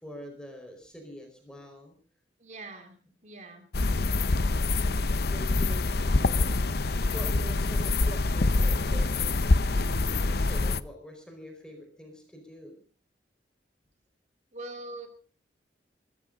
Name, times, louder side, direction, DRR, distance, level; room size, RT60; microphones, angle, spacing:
voice 1, 0.0-1.9 5.2-6.5 7.1-12.8, equal, 5° left, 3 dB, 4.8 m, -45 dB
voice 2, 2.4-3.0 3.2-3.7 14.5-15.1, right 2 dB, 40° right, 6 dB, 2.7 m, -42 dB
sound 1, 3.7-10.8, left 3 dB, 60° left, 0.8 m, -25 dB
24.0 x 14.5 x 3.9 m, 0.39 s
head